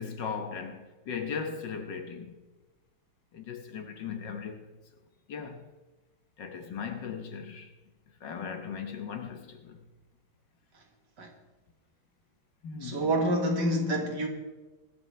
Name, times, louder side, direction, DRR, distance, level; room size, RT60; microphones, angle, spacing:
voice 1, 0.0-2.3 3.3-4.7 5.3-5.7 6.4-7.7 8.2-9.8 12.6-13.1, left 6 dB, 60° left, 1.7 m, -38 dB
voice 2, 12.8-14.3, right 1 dB, 55° right, 2.2 m, -27 dB
23.0 x 12.0 x 3.2 m
omnidirectional pair, 2.3 m